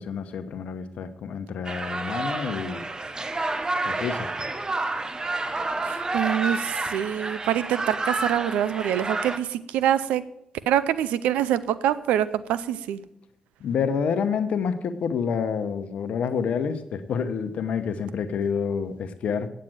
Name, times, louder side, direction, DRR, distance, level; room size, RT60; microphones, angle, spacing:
voice 1, 0.0-2.9 3.9-4.3 13.6-19.5, left 6 dB, 75° left, 10 dB, 0.9 m, -28 dB
sound 1, 1.6-9.4, right 2 dB, 35° right, 1.1 m, -29 dB
voice 2, 5.8-10.2 10.7-13.0, right 11 dB, 90° right, 16 dB, 0.5 m, -25 dB
8.9 x 7.5 x 7.8 m, 0.79 s
supercardioid pair, 45°, 2 cm